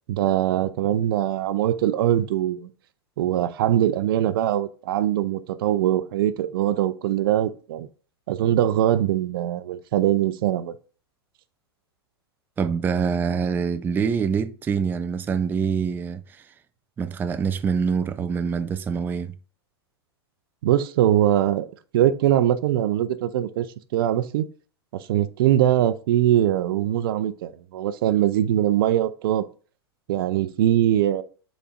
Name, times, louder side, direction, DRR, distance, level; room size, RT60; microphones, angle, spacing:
voice 1, 0.1-2.7 3.2-7.9 8.3-10.7 20.6-21.7 21.9-23.7 23.9-24.5 25.1-29.4 30.1-31.2, right 12 dB, 60° right, 0.6 m, -22 dB
voice 2, 12.6-16.5 17.0-19.4, right 6 dB, 15° right, 0.4 m, -25 dB
9.9 x 4.2 x 2.5 m
hypercardioid pair, 100°, 13 cm